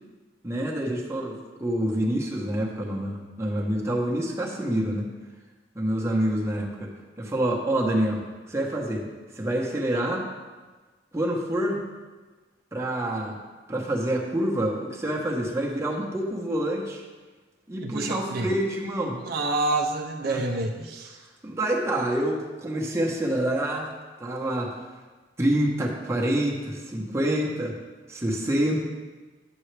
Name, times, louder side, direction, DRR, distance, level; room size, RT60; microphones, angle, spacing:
voice 1, 0.4-5.1 5.7-6.9 7.2-9.1 9.3-10.3 11.1-11.8 12.7-13.4 13.7-17.0 17.7-19.2 20.3-20.4 21.2-23.9 24.2-24.7 25.4-27.7 28.1-28.8, right 1 dB, 15° right, -2 dB, 1.0 m, -27 dB
voice 2, 17.8-18.5 19.2-21.2, right 2 dB, 55° right, 1 dB, 0.5 m, -28 dB
9.0 x 7.1 x 3.3 m, 1.3 s
head